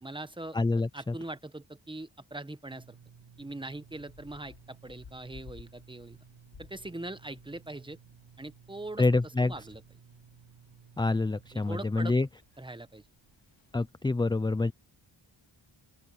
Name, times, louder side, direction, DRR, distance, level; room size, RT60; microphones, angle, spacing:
voice 1, 0.0-3.0 3.4-6.2 6.6-8.0 8.4-9.0 9.4-9.8 11.5-12.1 12.6-13.0, right 2 dB, 10° right, 1.0 m, -41 dB
voice 2, 0.5-1.1 9.0-9.5 11.0-12.3 13.7-14.7, left 3 dB, 10° left, 0.3 m, -27 dB
sound 1, 2.7-13.9, right 6 dB, 75° right, 8.0 m, -57 dB
sound 2, 3.7-13.7, left 6 dB, 75° left, 3.4 m, -58 dB
open air
wide cardioid pair, 120°, 47 cm